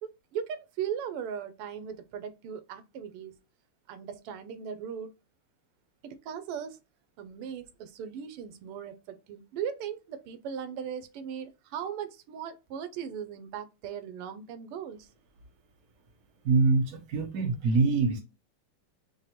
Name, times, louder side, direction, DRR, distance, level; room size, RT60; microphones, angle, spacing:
voice 1, 0.0-3.3 3.9-5.1 6.0-6.8 7.2-15.1, right 8 dB, 90° right, 1.6 m, -38 dB
voice 2, 16.4-18.2, right 4 dB, 65° right, 0.9 m, -24 dB
6.2 x 2.2 x 2.8 m
omnidirectional pair, 2.4 m